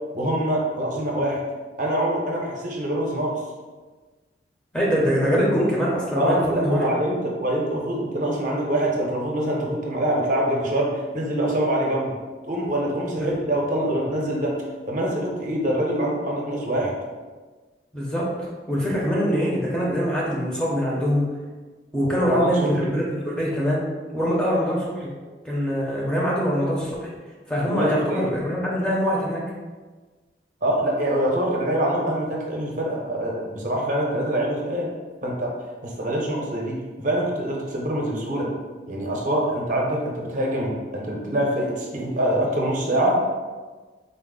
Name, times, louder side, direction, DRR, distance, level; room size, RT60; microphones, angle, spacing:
voice 1, 0.1-1.4 1.8-3.4 6.2-12.1 12.5-14.6 14.9-16.9 22.2-23.0 27.6-28.3 30.6-34.9 35.2-35.5 35.8-38.5 38.9-43.2, right 1 dB, 45° right, -2 dB, 0.6 m, -25 dB
voice 2, 4.7-6.9 13.2-13.3 17.9-21.3 21.9-23.9 24.1-25.1 25.4-27.1 27.5-29.4, equal, 5° left, -5 dB, 0.6 m, -23 dB
3.9 x 2.0 x 3.7 m, 1.3 s
head